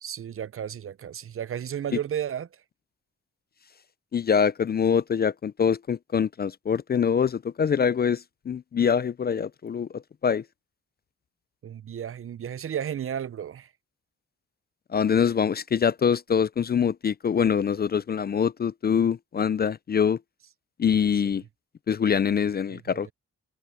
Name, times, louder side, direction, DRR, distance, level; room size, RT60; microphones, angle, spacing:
voice 1, 0.0-2.6 11.6-13.7 22.7-23.1, right 9 dB, 45° right, 0.6 m, -33 dB
voice 2, 4.1-9.9 10.2-10.4 14.9-20.2 20.8-21.4 21.9-23.1, left 7 dB, 35° left, 0.4 m, -24 dB
cardioid pair, 80°, 29 cm